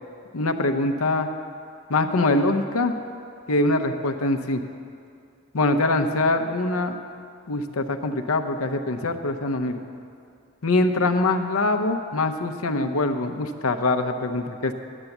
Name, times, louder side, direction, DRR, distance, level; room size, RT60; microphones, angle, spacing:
voice 1, 0.3-1.3 1.9-2.9 3.5-4.6 5.5-7.0 7.5-9.8 10.6-14.7, left 2 dB, 80° left, 6 dB, 0.7 m, -23 dB
11.0 x 7.1 x 7.9 m, 2.4 s
head